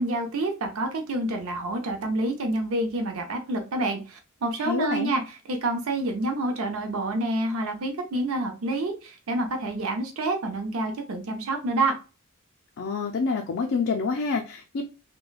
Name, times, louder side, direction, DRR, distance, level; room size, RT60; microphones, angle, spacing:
voice 1, 0.0-12.0, right 2 dB, 70° right, 4 dB, 0.5 m, -28 dB
voice 2, 4.6-5.1 12.8-14.8, left 4 dB, 60° left, 2 dB, 0.4 m, -27 dB
3.1 x 2.2 x 2.3 m, 0.32 s
head